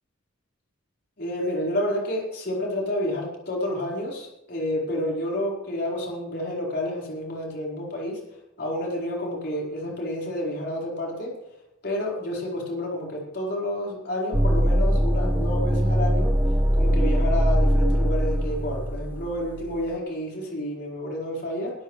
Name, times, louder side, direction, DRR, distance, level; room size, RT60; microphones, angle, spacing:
voice 1, 1.2-8.2 8.6-11.3 11.8-16.3 16.7-21.7, left 1 dB, 50° left, -3 dB, 4.5 m, -29 dB
sound 1, 14.3-19.8, equal, 10° right, 1.0 m, -22 dB
22.0 x 13.0 x 3.3 m, 0.89 s
head